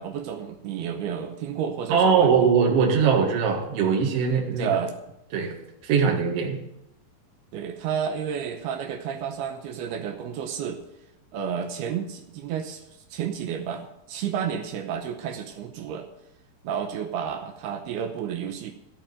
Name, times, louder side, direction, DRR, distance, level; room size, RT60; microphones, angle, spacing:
voice 1, 0.0-2.5 4.5-4.9 7.5-10.8 11.3-12.8 13.1-16.1 16.6-18.7, right 8 dB, 80° right, 5 dB, 2.8 m, -31 dB
voice 2, 1.9-4.7 5.3-5.6 5.8-6.6, right 6 dB, 50° right, 1 dB, 2.1 m, -21 dB
15.0 x 5.1 x 8.8 m, 0.85 s
omnidirectional pair, 4.8 m